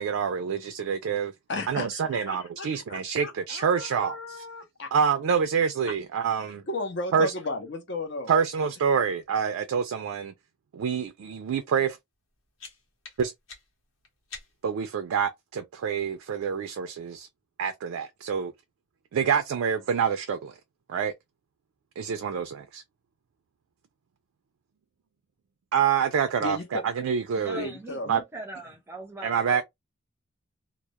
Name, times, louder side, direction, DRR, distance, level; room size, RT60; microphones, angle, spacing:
voice 1, 0.0-1.3 1.7-4.4 4.9-6.6 7.1-7.3 8.3-10.3 10.7-12.0 13.2-13.3 14.6-17.3 17.6-18.5 19.1-20.5 20.9-21.1 22.0-22.8 25.7-27.6 28.1-28.2 29.2-29.6, right 7 dB, 90° right, 0.3 m, -27 dB
voice 2, 1.5-4.9 6.7-8.3 26.4-26.8 27.5-28.1, left 2 dB, 55° left, 0.6 m, -34 dB
sound 1, 12.1-14.8, left 4 dB, 75° left, 0.9 m, -48 dB
voice 3, 27.4-29.6, right 1 dB, 10° right, 0.5 m, -41 dB
2.2 x 2.0 x 2.7 m
head